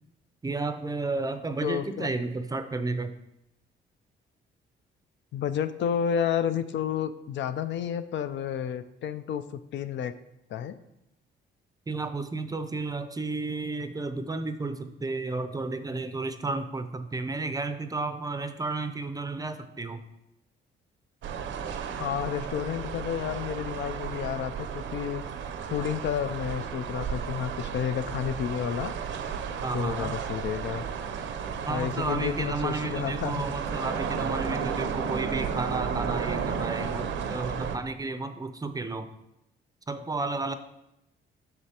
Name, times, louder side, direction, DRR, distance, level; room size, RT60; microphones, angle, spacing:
voice 1, 0.4-3.2 11.9-20.0 29.6-30.1 31.7-39.1 39.9-40.5, right 3 dB, 20° right, 9 dB, 0.5 m, -32 dB
voice 2, 1.6-2.1 5.3-9.4 9.7-10.1 10.5-10.7 22.0-25.2 25.7-28.9 29.7-30.8 31.7-33.4, left 9 dB, 65° left, 11 dB, 0.5 m, -30 dB
sound 1, 21.2-37.8, right 6 dB, 70° right, 0.6 m, -33 dB
7.8 x 6.1 x 2.9 m, 0.87 s
cardioid pair, 90°, 20 cm